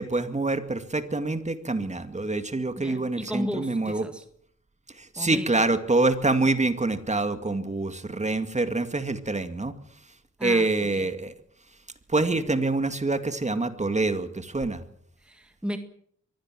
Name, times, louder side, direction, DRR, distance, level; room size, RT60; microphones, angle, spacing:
voice 1, 0.0-4.1 4.9-9.7 10.4-11.3 12.1-14.8, right 2 dB, 20° right, 2.2 m, -26 dB
voice 2, 2.8-4.2 5.2-5.5 10.4-11.1 15.2-15.8, equal, 5° right, 1.9 m, -34 dB
23.5 x 17.0 x 7.6 m
cardioid pair, 85°, 31 cm